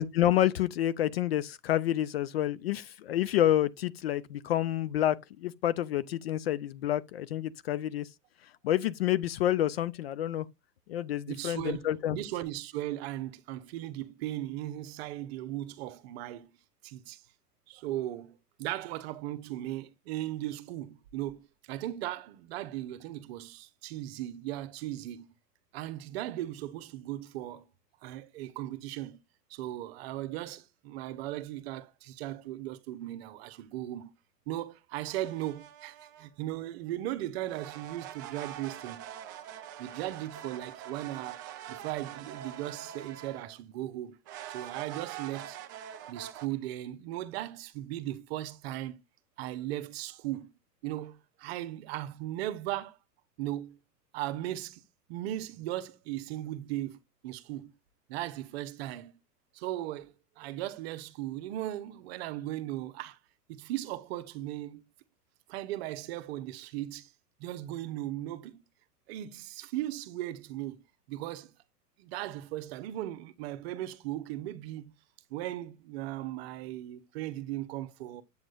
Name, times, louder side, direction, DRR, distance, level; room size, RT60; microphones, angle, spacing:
voice 1, 0.0-8.1 8.6-10.5 10.9-12.2, left 12 dB, 40° left, 0.5 m, -28 dB
voice 2, 11.3-16.5 16.8-17.2 17.7-25.2 25.7-27.7 28.0-29.2 29.5-34.1 34.5-39.1 39.8-44.2 44.5-45.6 46.1-49.0 49.4-50.5 50.8-53.0 53.4-53.8 54.1-54.8 55.1-57.7 58.1-59.1 59.5-63.2 63.5-64.8 65.5-67.1 67.4-68.6 69.1-70.8 71.1-71.5 72.0-74.9 75.3-78.2, right 14 dB, 40° right, 1.0 m, -37 dB
sound 1, 35.1-36.3 37.5-43.6 44.2-46.5, right 10 dB, 15° right, 0.3 m, -44 dB
8.7 x 7.6 x 2.5 m
figure-of-eight pair, 105°, 48 cm